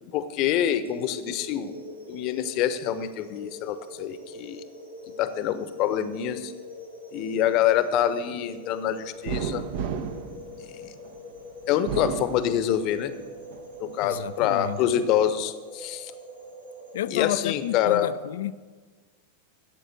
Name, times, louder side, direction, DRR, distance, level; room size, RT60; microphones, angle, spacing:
voice 1, 0.0-1.8 2.1-4.6 5.2-6.5 7.1-9.6 10.8-10.9 11.7-13.1 13.8-16.1 17.1-18.1, left 10 dB, 40° left, 12 dB, 1.0 m, -26 dB
sound 1, 0.8-18.0, left 1 dB, 80° right, 2.3 m, -43 dB
sound 2, 9.3-11.2 11.7-13.1 13.5-14.4, right 7 dB, 50° right, 1.0 m, -33 dB
voice 2, 14.0-14.8 16.9-18.6, left 11 dB, 60° left, 16 dB, 0.5 m, -31 dB
13.0 x 8.4 x 8.1 m, 1.4 s
figure-of-eight pair, 90°, 0 cm